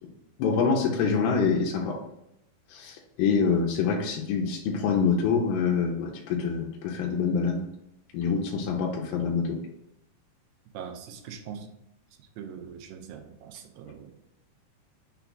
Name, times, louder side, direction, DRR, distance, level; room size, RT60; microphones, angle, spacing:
voice 1, 0.4-2.0 2.7-7.6 8.1-9.6, left 5 dB, 80° left, -1 dB, 2.2 m, -26 dB
voice 2, 10.7-11.7 12.4-14.1, right 7 dB, 80° right, 4 dB, 2.1 m, -42 dB
5.9 x 2.3 x 3.8 m, 0.82 s
omnidirectional pair, 4.5 m